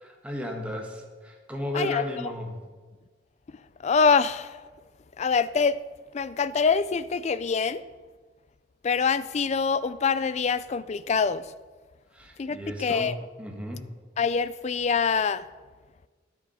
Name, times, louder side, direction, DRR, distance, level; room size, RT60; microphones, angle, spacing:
voice 1, 0.2-2.5 12.1-13.1 13.4-13.8, left 1 dB, 5° right, 1.4 m, -34 dB
voice 2, 1.7-2.0 3.8-4.6 5.2-5.8 6.1-7.8 8.8-11.5 12.4-13.1 14.2-15.4, left 5 dB, 35° left, 0.3 m, -25 dB
10.0 x 8.4 x 5.5 m
head